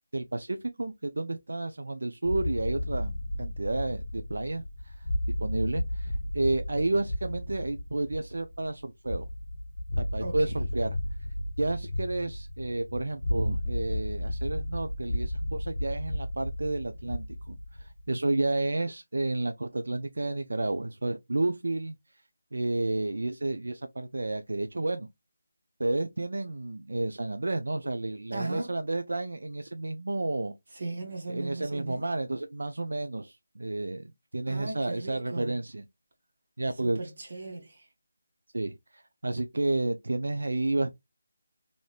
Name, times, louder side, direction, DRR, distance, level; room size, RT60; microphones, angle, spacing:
voice 1, 0.1-3.1 3.4-5.0 5.4-9.3 10.0-11.0 11.6-22.0 22.5-25.1 25.8-30.5 31.3-35.8 36.6-37.0 38.5-40.9, right 2 dB, 85° right, 0.3 m, -31 dB
sound 1, 2.2-18.1, left 1 dB, 80° left, 0.6 m, -33 dB
voice 2, 28.3-28.8 30.7-32.1 34.5-35.6 36.8-37.8, right 2 dB, 40° right, 0.6 m, -37 dB
3.3 x 2.5 x 2.3 m
figure-of-eight pair, 175°, 0 cm